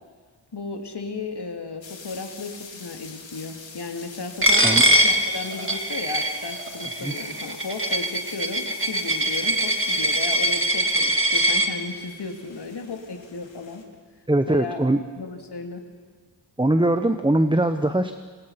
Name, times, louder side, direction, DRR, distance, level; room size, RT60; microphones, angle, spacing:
voice 1, 0.5-13.8 14.5-14.8 15.2-15.8, left 4 dB, 60° left, 4 dB, 3.1 m, -34 dB
sound 1, 1.8-13.8, left 5 dB, 85° left, 3.1 m, -44 dB
Coin (dropping), 4.4-11.7, right 1 dB, 30° right, 2.2 m, -22 dB
voice 2, 14.3-15.0 16.6-18.1, right 1 dB, 10° right, 9 dB, 1.0 m, -21 dB
29.0 x 26.5 x 5.9 m, 1.5 s
wide cardioid pair, 85°, 44 cm